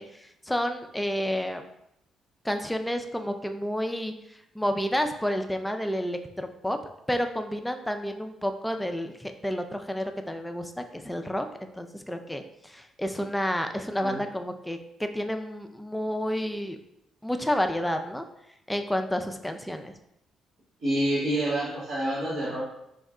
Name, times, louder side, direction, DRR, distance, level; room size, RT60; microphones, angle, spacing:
voice 1, 0.0-1.6 2.4-6.8 7.1-16.8 17.2-18.3 18.7-19.9, equal, 5° left, 6 dB, 0.4 m, -30 dB
voice 2, 20.8-22.7, right 1 dB, 65° right, -7 dB, 1.3 m, -27 dB
4.3 x 2.1 x 3.6 m, 0.81 s
cardioid pair, 90°, 0 cm